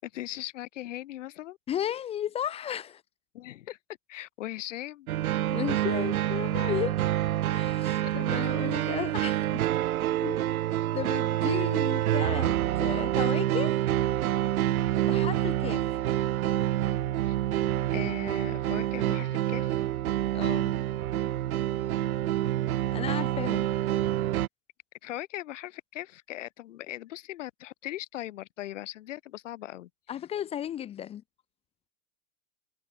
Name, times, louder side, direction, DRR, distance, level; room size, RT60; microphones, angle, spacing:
voice 1, 0.0-1.6 3.3-3.8 4.1-5.1 7.6-7.8 11.4-11.6 17.2-17.3 17.9-19.9 25.0-29.9, left 14 dB, 60° left, 4.7 m, -39 dB
voice 2, 1.7-3.0 5.5-7.1 7.5-9.6 10.2-10.5 10.9-13.8 15.0-15.8 20.3-20.8 22.9-23.7 30.1-31.2, left 10 dB, 15° left, 1.3 m, -34 dB
sound 1, 5.1-24.5, right 13 dB, 75° right, 1.4 m, -27 dB
supercardioid pair, 175°, 43 cm